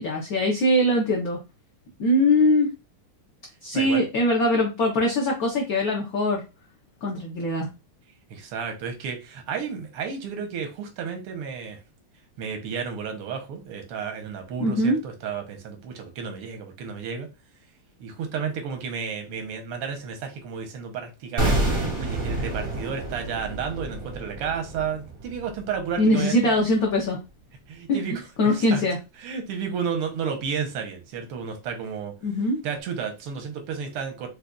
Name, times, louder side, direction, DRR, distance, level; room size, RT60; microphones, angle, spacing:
voice 1, 0.0-1.4 2.0-2.7 3.6-6.4 7.0-7.7 14.6-15.0 26.0-27.2 27.9-28.0 28.4-29.0 32.2-32.6, left 1 dB, 65° left, -2 dB, 0.9 m, -22 dB
voice 2, 8.3-11.8 12.4-17.3 18.0-26.5 27.7-28.8 29.2-32.1 32.6-34.3, right 6 dB, 85° right, 4 dB, 1.7 m, -32 dB
sound 1, 21.4-26.4 26.6-26.8, right 2 dB, 45° right, 0.6 m, -29 dB
5.0 x 2.3 x 2.3 m, 0.28 s
omnidirectional pair, 2.4 m